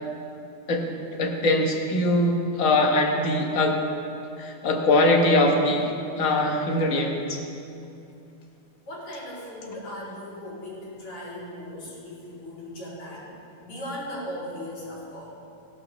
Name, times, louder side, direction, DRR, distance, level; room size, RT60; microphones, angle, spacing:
voice 1, 0.7-3.8 4.4-7.4, left 2 dB, 45° left, 2 dB, 1.3 m, -22 dB
voice 2, 8.8-13.3 13.6-15.3, left 1 dB, 90° left, -7 dB, 3.8 m, -37 dB
17.5 x 11.5 x 3.0 m, 2.6 s
omnidirectional pair, 2.4 m